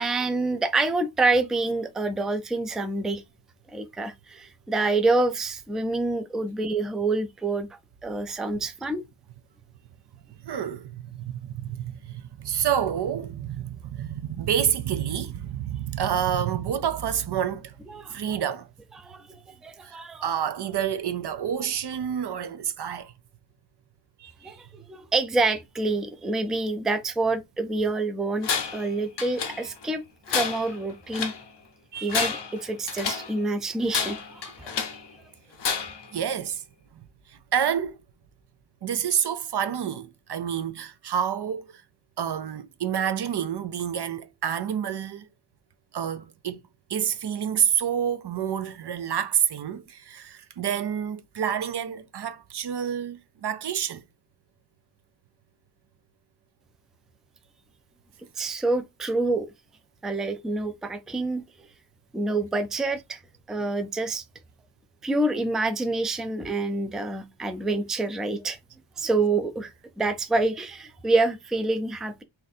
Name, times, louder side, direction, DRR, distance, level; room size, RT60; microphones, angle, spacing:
voice 1, 0.0-3.2 3.7-7.7 8.0-9.0 17.9-18.2 19.0-19.4 19.6-20.2 24.4-30.0 30.3-31.3 32.0-34.7 58.4-59.5 60.0-61.4 62.1-63.2 63.5-64.2 65.0-68.6 69.0-72.2, right 2 dB, ahead, 0.3 m, -27 dB
voice 2, 10.4-17.7 18.1-18.7 19.8-23.1 24.2-24.6 31.9-32.3 36.1-36.6 36.9-37.0 37.3-38.0 38.8-41.7 42.2-45.3 45.9-46.6 46.9-54.0, right 9 dB, 65° right, 0.5 m, -28 dB
Tools, 28.4-28.9 29.2-29.9 30.3-31.4 32.0-33.3 33.9-35.1 35.6-36.1, left 6 dB, 65° left, 0.7 m, -30 dB
2.6 x 2.6 x 4.0 m
wide cardioid pair, 125°, 44 cm